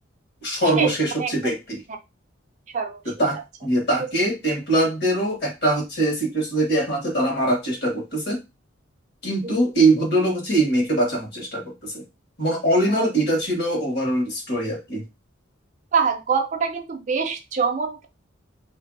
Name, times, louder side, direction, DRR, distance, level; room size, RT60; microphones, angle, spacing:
voice 1, 0.4-1.8 3.0-8.4 9.2-12.0 12.4-15.0, right 1 dB, 55° left, 1 dB, 1.2 m, -22 dB
voice 2, 1.2-1.6 2.7-3.0 9.4-9.6 12.9-13.1 15.9-18.1, right 5 dB, 40° right, 6 dB, 0.4 m, -24 dB
2.7 x 2.5 x 2.6 m, 0.25 s
head